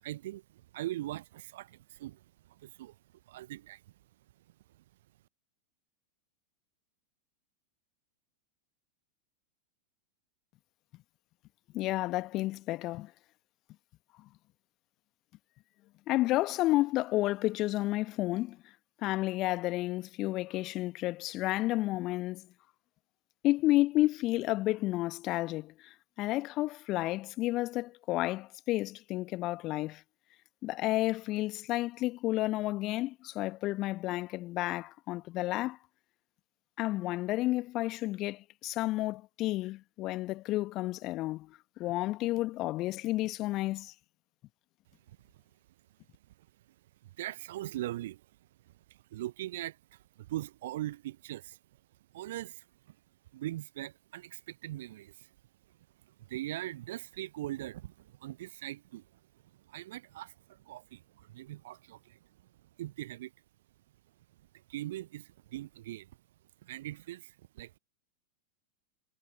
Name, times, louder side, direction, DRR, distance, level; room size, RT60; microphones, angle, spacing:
voice 1, 0.0-2.2 2.5-2.9 3.3-3.8 45.1-45.2 47.0-48.2 48.9-49.8 50.2-51.6 52.1-53.0 53.3-55.3 56.2-59.0 59.7-62.2 62.8-63.3 64.7-66.1 66.6-67.8, right 14 dB, 55° right, 0.8 m, -41 dB
voice 2, 11.7-13.1 16.1-18.6 19.0-22.5 23.4-30.0 30.6-35.8 36.8-43.9, left 17 dB, 35° left, 1.4 m, -31 dB
figure-of-eight pair, 90°, 0 cm